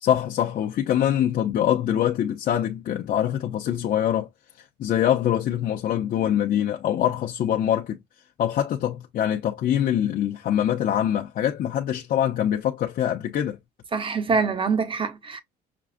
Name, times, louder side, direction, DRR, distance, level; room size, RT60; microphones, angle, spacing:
voice 1, 0.0-4.3 4.6-8.0 8.4-13.6, left 10 dB, 55° left, 0.7 m, -24 dB
voice 2, 13.9-15.4, right 5 dB, 30° right, 1.0 m, -24 dB
6.0 x 2.3 x 2.5 m
cardioid pair, 110°, 17 cm